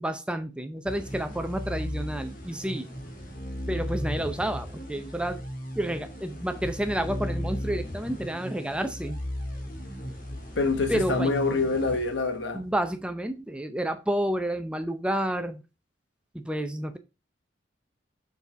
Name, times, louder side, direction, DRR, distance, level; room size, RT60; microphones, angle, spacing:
voice 1, 0.0-2.9 3.7-5.4 5.8-9.2 10.9-11.3 12.5-15.6 16.3-17.0, right 1 dB, 5° right, 0.5 m, -30 dB
sound 1, 0.9-12.7, equal, 45° left, 1.8 m, -36 dB
voice 2, 10.6-12.6, left 3 dB, 70° left, 1.3 m, -26 dB
6.9 x 4.1 x 4.6 m
head